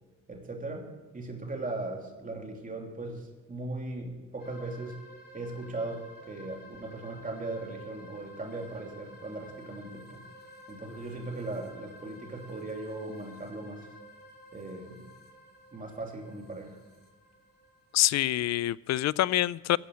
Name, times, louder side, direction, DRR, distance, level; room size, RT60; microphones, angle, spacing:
voice 1, 0.3-5.0 5.3-10.3 10.7-13.9 14.5-15.1 15.7-16.8, right 2 dB, 25° right, 3.0 m, -38 dB
sound 1, 4.4-18.0, left 1 dB, 30° left, 3.4 m, -52 dB
voice 2, 17.9-19.8, left 15 dB, 60° left, 0.4 m, -26 dB
14.0 x 8.3 x 6.4 m
cardioid pair, 90°, 30 cm